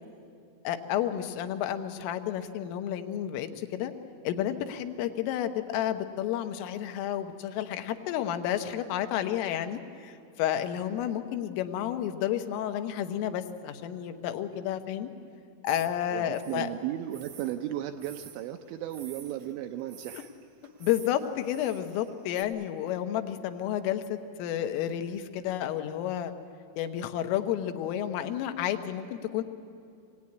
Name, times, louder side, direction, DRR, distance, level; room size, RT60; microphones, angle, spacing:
voice 1, 0.7-3.9 4.3-15.1 15.6-16.7 20.1-20.2 20.8-26.3 26.8-29.4, left 11 dB, 90° left, 7 dB, 3.6 m, -31 dB
sound 1, 15.7-22.4, right 8 dB, 65° right, 2.0 m, -51 dB
voice 2, 16.1-20.3, right 12 dB, 80° right, 7 dB, 2.6 m, -35 dB
24.5 x 17.5 x 9.6 m, 2.6 s
omnidirectional pair, 5.7 m